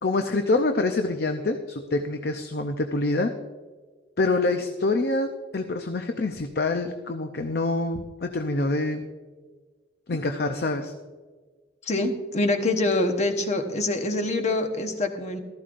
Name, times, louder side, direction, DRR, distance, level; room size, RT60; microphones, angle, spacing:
voice 1, 0.0-3.3 4.2-9.0 10.1-10.9, left 2 dB, 55° left, 6 dB, 0.6 m, -26 dB
voice 2, 11.8-15.4, left 2 dB, 35° left, 5 dB, 1.0 m, -25 dB
15.0 x 13.0 x 2.6 m, 1.4 s
head